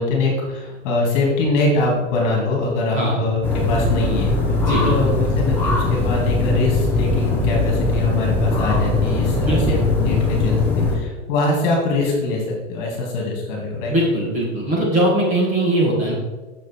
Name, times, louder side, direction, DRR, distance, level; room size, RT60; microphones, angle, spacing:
voice 1, 0.0-13.9, left 2 dB, 40° left, -1 dB, 2.3 m, -23 dB
sound 1, 3.4-11.0, left 3 dB, 5° left, 0.6 m, -20 dB
voice 2, 4.6-5.0 9.4-9.8 13.9-16.1, right 1 dB, 20° right, -4 dB, 1.6 m, -20 dB
6.6 x 6.1 x 4.4 m, 1.2 s
supercardioid pair, 165°, 36 cm